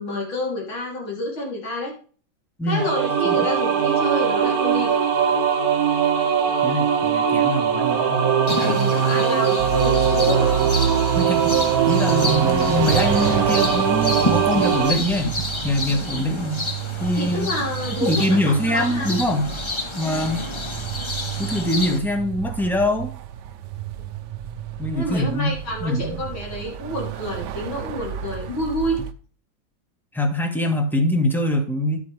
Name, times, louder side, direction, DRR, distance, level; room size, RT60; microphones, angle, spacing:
voice 1, 0.0-1.9 2.7-4.9 8.2-8.3 8.6-10.5 15.9-16.2 17.2-19.1 20.0-20.3 24.0-24.1 24.9-29.0, left 1 dB, 80° left, -2 dB, 3.8 m, -29 dB
voice 2, 2.6-2.9 3.2-3.4 6.6-8.2 11.1-15.3 15.6-16.7 17.0-17.5 18.0-19.5 19.9-20.5 21.4-23.1 24.8-25.5 25.8-26.2 30.1-32.0, left 1 dB, ahead, 4 dB, 0.9 m, -23 dB
sound 1, 2.7-14.9, right 7 dB, 50° right, 1.4 m, -20 dB
sound 2, 8.5-22.0, left 2 dB, 35° left, 0.5 m, -30 dB
sound 3, 9.6-29.1, right 8 dB, 70° right, 1.2 m, -31 dB
11.0 x 8.3 x 3.3 m, 0.43 s
omnidirectional pair, 2.2 m